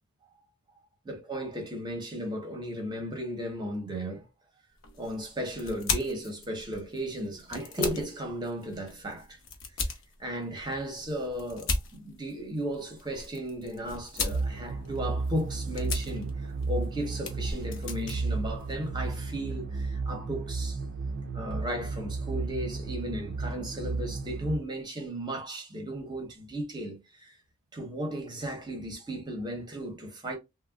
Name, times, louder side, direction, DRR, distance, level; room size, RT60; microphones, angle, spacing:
voice 1, 1.1-4.3 5.0-9.4 10.2-20.8 21.3-27.3 27.7-30.4, equal, 20° right, 0.7 m, -35 dB
sound 1, 4.8-19.3, left 4 dB, 60° left, 0.8 m, -39 dB
sound 2, 14.3-24.6, right 3 dB, 50° right, 0.4 m, -33 dB
3.4 x 2.1 x 2.3 m
head